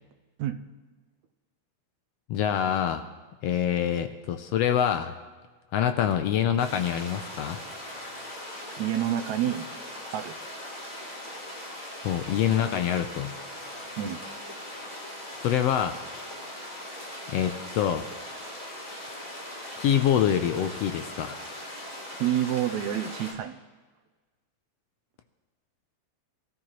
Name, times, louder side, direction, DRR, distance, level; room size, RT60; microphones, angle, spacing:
voice 1, 2.3-3.0 3.4-5.1 5.7-7.6 7.9-8.0 12.0-13.3 15.4-16.0 17.3-18.0 19.8-21.4, left 9 dB, 75° left, 8 dB, 1.5 m, -25 dB
sound 1, 6.6-23.3, left 1 dB, 15° left, 3.2 m, -40 dB
voice 2, 8.8-9.7 10.1-10.4 14.0-14.2 22.2-23.6, right 11 dB, 80° right, 9 dB, 2.0 m, -28 dB
22.5 x 13.5 x 3.1 m, 1.3 s
omnidirectional pair, 3.4 m